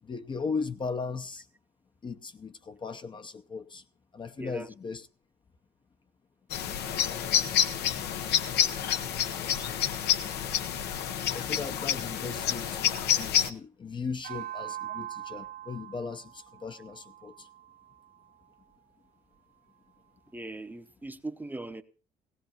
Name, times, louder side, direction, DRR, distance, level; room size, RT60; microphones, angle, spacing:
voice 1, 0.0-1.5 2.0-3.8 4.1-5.1 11.3-17.5, left 4 dB, 30° left, 0.7 m, -37 dB
voice 2, 4.4-4.7 20.3-21.8, right 2 dB, 10° right, 0.8 m, -39 dB
sound 1, 6.5-13.5, left 9 dB, 75° left, 1.0 m, -28 dB
sound 2, 14.2-18.8, right 12 dB, 70° right, 1.6 m, -43 dB
18.0 x 16.5 x 2.9 m
cardioid pair, 110°, 17 cm